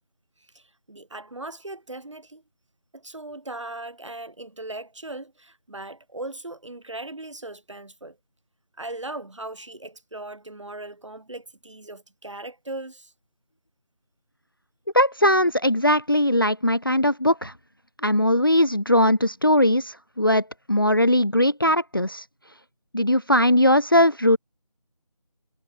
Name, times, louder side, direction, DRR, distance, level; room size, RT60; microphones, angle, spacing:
voice 1, 0.5-2.4 2.9-8.2 8.8-13.1, right 2 dB, 55° right, 2.6 m, -38 dB
voice 2, 14.9-17.5 18.0-22.2 22.9-24.4, left 1 dB, 35° left, 0.7 m, -20 dB
figure-of-eight pair, 180°, 19 cm